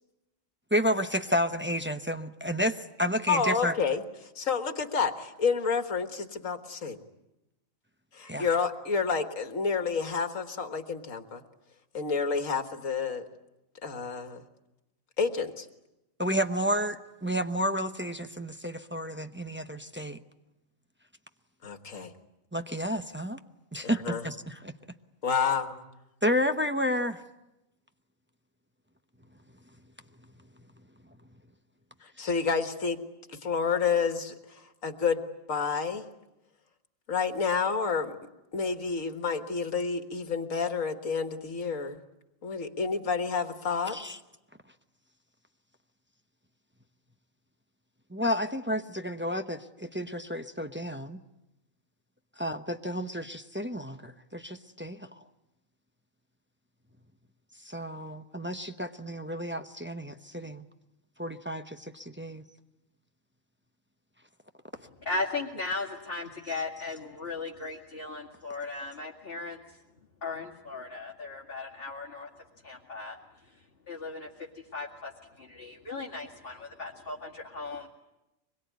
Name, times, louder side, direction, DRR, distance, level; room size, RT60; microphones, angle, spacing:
voice 1, 0.7-3.7 8.3-8.5 16.2-20.2 22.5-23.4 23.7-24.7 26.2-27.2 43.9-44.2 48.1-51.2 52.4-55.1 57.6-60.6 61.2-62.4, equal, 10° right, 6 dB, 0.7 m, -31 dB
voice 2, 3.3-7.0 8.1-11.4 11.9-13.2 13.8-14.4 15.2-15.7 21.6-22.1 23.8-24.2 25.2-25.8 32.0-33.0 33.3-35.2 35.5-36.1 37.1-38.2 38.5-42.0 42.4-44.0, left 5 dB, 75° left, 7 dB, 2.0 m, -29 dB
voice 3, 65.0-69.8 70.2-72.3 72.6-73.2 73.9-75.1 75.4-77.9, left 3 dB, 45° left, -4 dB, 2.4 m, -37 dB
24.5 x 22.0 x 9.5 m, 0.95 s
omnidirectional pair, 1.4 m